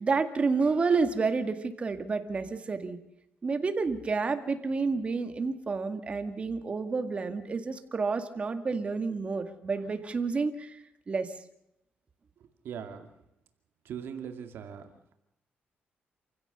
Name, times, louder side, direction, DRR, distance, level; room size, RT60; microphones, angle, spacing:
voice 1, 0.0-3.0 3.4-10.8 11.1-11.3, right 4 dB, 30° right, 8 dB, 2.0 m, -29 dB
voice 2, 12.6-13.1 13.8-14.8, right 8 dB, 75° right, 6 dB, 2.3 m, -39 dB
28.0 x 16.0 x 6.8 m, 0.83 s
cardioid pair, 125°, 4 cm